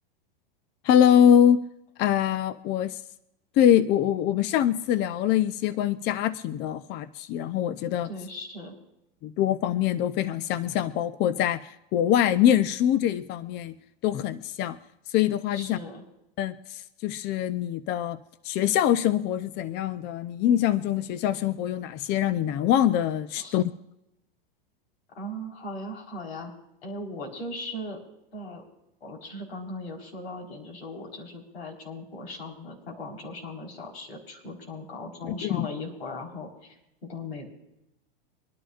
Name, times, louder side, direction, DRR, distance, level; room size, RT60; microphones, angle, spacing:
voice 1, 0.8-1.6 2.0-3.0 3.6-8.1 9.2-13.7 14.0-14.8 15.1-15.8 16.4-18.2 18.4-23.7 35.4-35.7, left 10 dB, 35° left, 14 dB, 0.6 m, -24 dB
voice 2, 8.0-8.8 15.5-16.0 23.4-23.6 25.1-26.5 26.8-28.0 28.3-28.6 29.0-36.8 37.0-37.5, left 1 dB, 85° left, -1 dB, 4.4 m, -38 dB
25.0 x 11.0 x 2.5 m, 0.89 s
hypercardioid pair, 115°, 30 cm